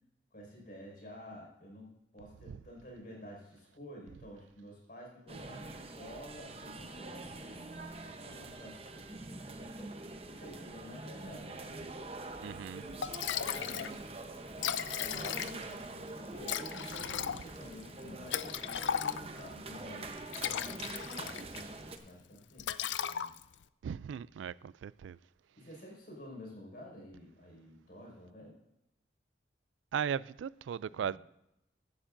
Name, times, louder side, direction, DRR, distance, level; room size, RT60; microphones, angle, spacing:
voice 1, 0.3-12.0 13.4-14.1 15.0-20.1 20.4-21.5 22.0-23.3 25.6-28.6 30.9-31.2, equal, 50° left, 5.1 m, -51 dB
sound 1, 5.3-22.0, right 2 dB, 30° right, 0.8 m, -45 dB
voice 2, 12.4-12.9 23.8-25.2 29.9-31.2, right 8 dB, 85° right, 0.3 m, -37 dB
Liquid, 12.7-12.8 13.0-13.9 14.2-14.3 14.5-15.8 16.4-19.5 20.1-21.7 22.0-22.2 22.6-23.6, left 9 dB, 80° left, 0.4 m, -36 dB
16.0 x 11.5 x 2.6 m
head